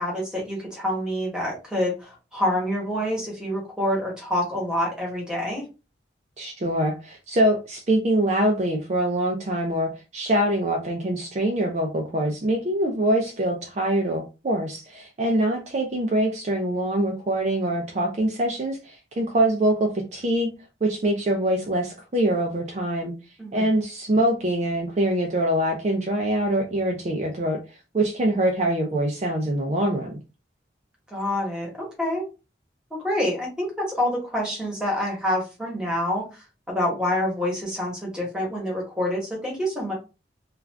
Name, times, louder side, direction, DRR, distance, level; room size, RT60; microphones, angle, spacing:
voice 1, 0.0-5.6 23.4-23.7 31.1-32.2 33.0-39.9, left 1 dB, 5° right, -2 dB, 1.1 m, -27 dB
voice 2, 6.4-20.5 20.8-23.1 23.5-27.6 27.9-30.2, right 1 dB, 40° right, 2 dB, 0.4 m, -24 dB
2.4 x 2.4 x 3.2 m, 0.30 s
head